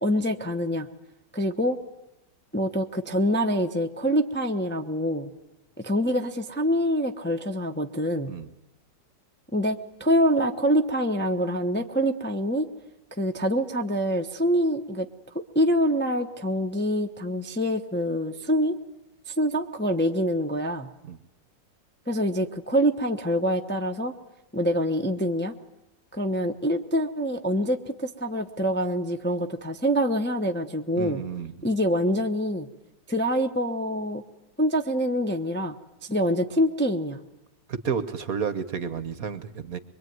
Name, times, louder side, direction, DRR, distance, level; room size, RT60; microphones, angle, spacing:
voice 1, 0.0-0.9 1.3-1.8 2.5-5.3 5.8-8.3 9.5-12.7 13.2-15.1 15.5-18.8 19.3-20.9 22.1-24.1 24.5-25.5 26.1-31.2 31.6-32.7 33.1-34.2 34.6-35.7 36.1-37.2, equal, 10° left, 4 dB, 0.8 m, -25 dB
voice 2, 30.9-31.7 37.7-39.8, right 6 dB, 55° right, 12 dB, 1.5 m, -31 dB
23.5 x 23.0 x 9.5 m, 0.90 s
omnidirectional pair, 1.9 m